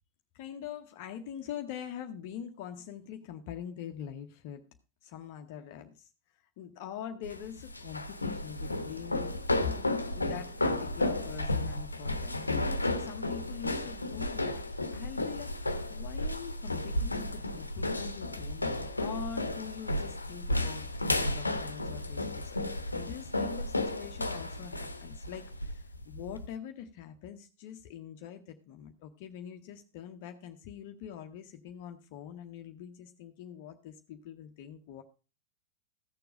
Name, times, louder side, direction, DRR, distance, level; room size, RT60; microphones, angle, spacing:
voice 1, 0.3-4.6 5.0-6.1 6.6-9.3 9.6-14.6 14.9-35.0, left 9 dB, 50° left, 5 dB, 0.9 m, -44 dB
sound 1, 7.2-26.5, left 1 dB, 80° left, 0.9 m, -33 dB
15.0 x 6.9 x 5.0 m, 0.33 s
figure-of-eight pair, 90°, 0 cm